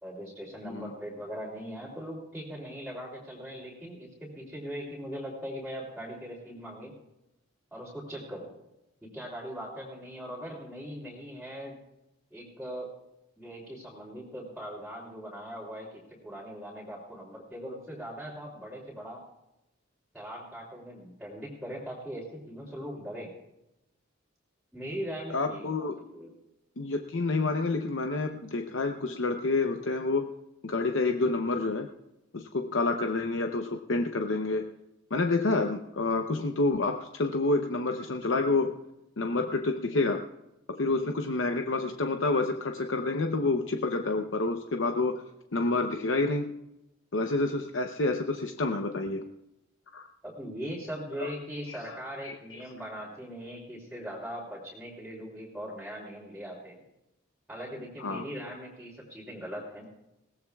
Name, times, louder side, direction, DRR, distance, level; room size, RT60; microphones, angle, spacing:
voice 1, 0.0-6.9 7.7-8.5 9.0-11.8 12.3-12.9 13.4-19.2 20.1-23.3 24.7-26.3 50.2-56.8 57.5-59.9, equal, 5° right, -6 dB, 3.0 m, -40 dB
voice 2, 25.3-26.0 26.8-30.3 30.6-31.9 32.3-34.7 35.1-38.8 39.2-40.3 40.7-45.2 45.5-46.5 47.1-49.3 49.9-50.1 51.2-51.3 51.7-52.6 58.0-58.2, left 3 dB, 65° left, 5 dB, 0.8 m, -28 dB
21.0 x 17.5 x 2.4 m, 0.91 s
head